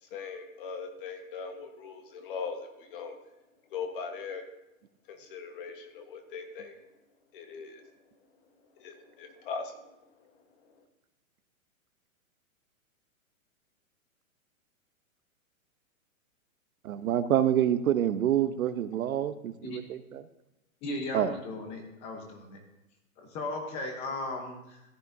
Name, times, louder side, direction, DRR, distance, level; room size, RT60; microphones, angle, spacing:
voice 1, 0.0-3.2 3.7-4.4 5.1-6.8 7.3-7.9 8.8-10.3 10.6-10.8, left 5 dB, 40° left, 6 dB, 1.2 m, -40 dB
voice 2, 16.8-20.2 21.1-21.3, right 10 dB, 75° right, 12 dB, 0.8 m, -27 dB
voice 3, 20.8-22.6 23.2-24.8, left 2 dB, 15° left, 4 dB, 0.9 m, -36 dB
14.0 x 9.4 x 2.7 m, 0.91 s
hypercardioid pair, 165°, 42 cm